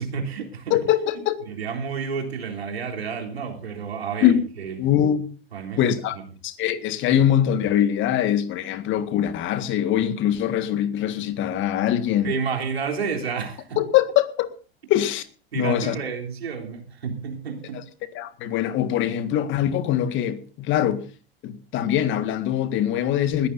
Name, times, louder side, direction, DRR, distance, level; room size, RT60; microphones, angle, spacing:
voice 1, 0.0-0.8 1.4-4.8 5.5-6.2 11.9-12.0 12.2-13.8 15.5-17.8, right 6 dB, 80° right, 3.6 m, -30 dB
voice 2, 0.7-1.4 4.2-4.4 4.8-5.3 5.8-6.2 6.4-12.3 13.8-14.5 14.9-15.3 15.5-16.0 18.2-21.0 21.4-23.5, left 11 dB, 40° left, 1.8 m, -22 dB
20.5 x 15.5 x 2.7 m
figure-of-eight pair, 90°, 31 cm